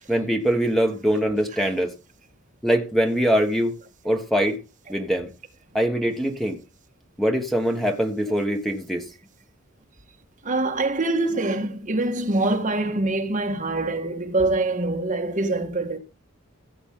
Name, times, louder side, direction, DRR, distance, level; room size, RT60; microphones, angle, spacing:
voice 1, 0.1-1.9 2.6-3.7 4.0-4.6 4.9-5.3 5.7-6.6 7.2-9.0, equal, ahead, 1.3 m, -23 dB
voice 2, 10.4-16.0, right 2 dB, 35° right, 1.7 m, -24 dB
16.0 x 8.0 x 3.8 m
head